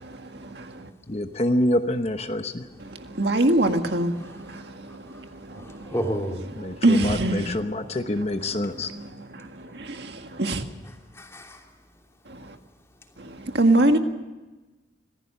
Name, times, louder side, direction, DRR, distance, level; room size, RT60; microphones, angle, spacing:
voice 1, 0.0-0.9 2.9-5.9 6.8-7.6 8.9-10.6 12.3-12.6 13.2-14.0, right 1 dB, 70° right, 1.8 m, -25 dB
voice 2, 1.1-2.7 6.6-8.9, left 1 dB, 35° left, 1.0 m, -26 dB
voice 3, 4.2-6.5 9.6-9.8 10.8-11.7 13.1-13.4, equal, 15° left, 3.0 m, -35 dB
25.0 x 16.0 x 6.7 m
head